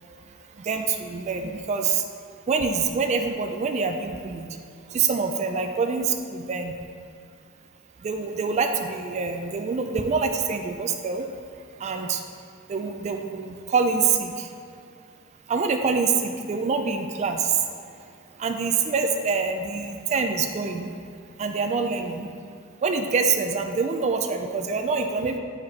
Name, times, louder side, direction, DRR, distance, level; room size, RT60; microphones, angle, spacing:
voice 1, 0.3-2.0 2.5-4.6 4.9-6.7 8.0-11.3 11.5-12.3 12.7-14.5 15.5-20.9 21.4-22.3 22.8-25.4, right 5 dB, 30° right, 5 dB, 0.3 m, -26 dB
8.3 x 4.8 x 3.1 m, 2.3 s
head